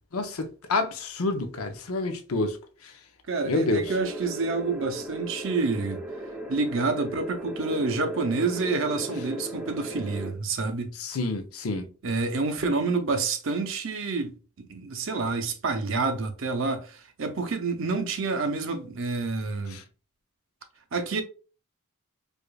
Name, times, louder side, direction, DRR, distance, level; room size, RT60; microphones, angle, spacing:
voice 1, 0.1-2.6 2.8-2.9 3.4-3.9 11.0-11.9 19.7-19.8, left 2 dB, 75° left, 0.7 m, -28 dB
voice 2, 3.3-6.0 6.5-10.9 12.0-19.8 20.9-21.2, right 3 dB, 60° right, 0.6 m, -28 dB
sound 1, 3.9-10.3, right 1 dB, 5° right, 0.6 m, -37 dB
4.7 x 2.4 x 2.3 m
head